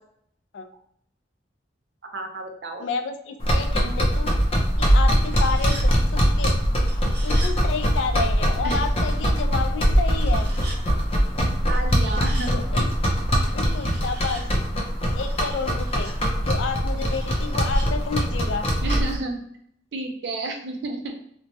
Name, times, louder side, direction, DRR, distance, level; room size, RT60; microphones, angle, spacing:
voice 1, 2.1-2.9 8.6-8.8 11.7-12.6 18.8-19.4 19.9-21.1, right 2 dB, 65° right, 3 dB, 0.5 m, -31 dB
voice 2, 2.8-4.3 4.8-5.8 6.1-6.6 7.2-10.5 12.5-12.9 13.5-14.6 15.2-16.1 16.4-18.7, left 5 dB, 90° left, 7 dB, 0.4 m, -30 dB
sound 1, 3.4-19.2, equal, 30° left, 0.5 m, -22 dB
sound 2, 5.1-5.9 6.9-7.5 10.2-10.8 11.7-12.5 13.5-14.4 15.3-16.1 17.0-17.9, right 1 dB, 45° right, 1.1 m, -41 dB
3.0 x 2.1 x 2.7 m, 0.68 s
head